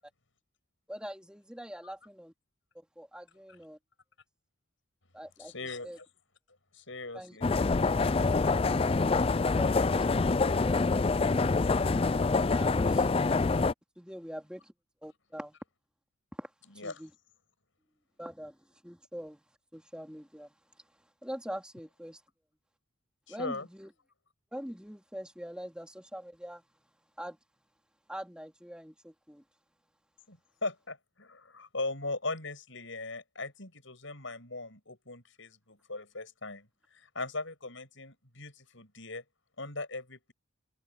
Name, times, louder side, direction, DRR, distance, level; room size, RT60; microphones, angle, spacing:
voice 1, 0.9-2.3 2.7-3.8 5.1-5.5 5.8-6.0 7.1-7.4 12.5-13.1 14.0-14.7 15.0-15.6 16.4-17.1 18.2-19.4 19.7-20.5 21.2-22.2 23.3-23.9 24.5-26.6 27.2-27.4 28.1-29.4, equal, 5° right, 2.6 m, -44 dB
voice 2, 5.4-6.1 6.7-7.5 16.7-17.0 23.3-23.7 30.3-39.2 39.6-40.3, left 3 dB, 65° left, 7.8 m, -39 dB
sound 1, 7.4-13.7, left 3 dB, 25° left, 0.4 m, -26 dB
head